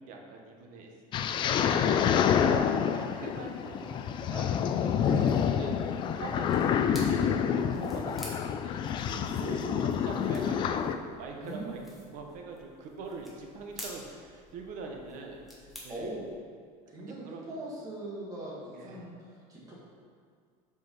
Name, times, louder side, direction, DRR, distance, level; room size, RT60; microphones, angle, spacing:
voice 1, 0.1-0.9 1.2-4.6 5.2-5.8 6.1-8.8 9.1-16.1 17.0-17.6 18.7-19.1, right 4 dB, 50° right, 2 dB, 1.1 m, -44 dB
sound 1, 1.1-11.0, left 8 dB, 30° left, 0.3 m, -28 dB
voice 2, 5.0-5.3 9.4-9.8 11.3-11.8 15.9-16.3 16.9-19.2 19.5-19.7, right 1 dB, 20° right, -6 dB, 2.0 m, -40 dB
sound 2, 5.3-16.4, equal, ahead, 1.4 m, -50 dB
8.0 x 5.3 x 5.5 m, 2.1 s
cardioid pair, 165°, 17 cm